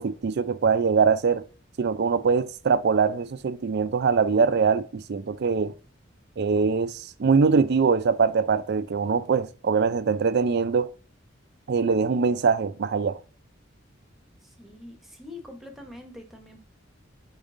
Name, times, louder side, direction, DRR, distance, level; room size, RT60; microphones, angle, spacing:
voice 1, 0.0-1.4 1.8-5.7 6.4-10.9 11.7-13.2, right 5 dB, 60° right, 0.4 m, -23 dB
voice 2, 14.6-16.6, left 2 dB, ahead, 1.0 m, -44 dB
5.1 x 4.0 x 2.5 m
head